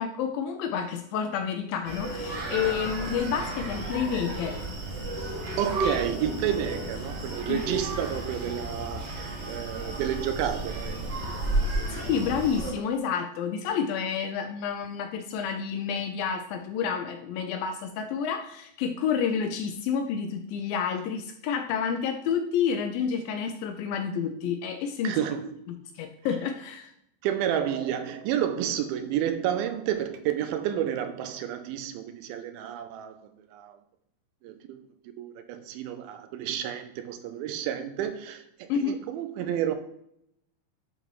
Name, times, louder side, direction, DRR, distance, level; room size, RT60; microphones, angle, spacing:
voice 1, 0.0-4.6 5.8-6.0 7.5-7.6 11.9-25.2 26.0-26.9 38.7-39.0, left 7 dB, 80° left, 6 dB, 2.1 m, -29 dB
Screaming, 1.8-12.7, right 2 dB, 50° right, 1.2 m, -32 dB
voice 2, 5.6-12.1 25.0-25.7 27.2-33.8 34.4-34.9 35.2-39.7, right 10 dB, 80° right, 8 dB, 2.2 m, -31 dB
10.5 x 4.0 x 3.0 m, 0.75 s
omnidirectional pair, 4.4 m